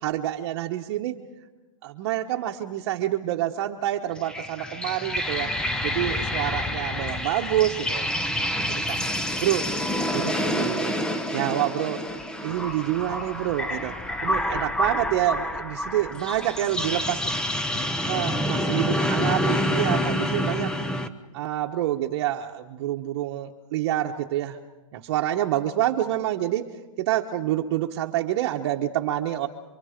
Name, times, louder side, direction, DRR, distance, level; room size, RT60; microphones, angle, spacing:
voice 1, 0.0-1.2 1.8-5.5 5.8-9.0 9.4-9.7 10.1-11.0 11.3-12.0 12.4-17.3 18.1-20.7 21.3-24.6 24.9-29.5, right 13 dB, 45° right, 2 dB, 1.1 m, -27 dB
sound 1, 4.2-21.1, left 1 dB, 5° left, 0.8 m, -27 dB
27.0 x 24.0 x 5.1 m, 1.1 s
hypercardioid pair, 145°, 18 cm